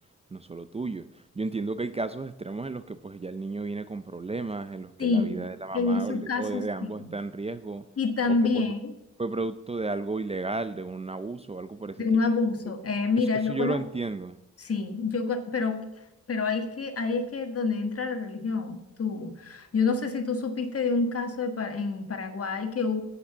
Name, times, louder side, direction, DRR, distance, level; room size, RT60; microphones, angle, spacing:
voice 1, 0.3-7.9 8.3-8.6 9.2-12.1 13.2-14.4, right 3 dB, 20° right, 12 dB, 0.4 m, -33 dB
voice 2, 5.0-5.4 5.7-6.7 7.0-7.1 8.0-8.9 12.0-13.8 14.6-15.9 16.3-23.0, left 4 dB, 55° left, 6 dB, 1.5 m, -27 dB
8.6 x 8.1 x 6.8 m, 0.93 s
wide cardioid pair, 120°, 29 cm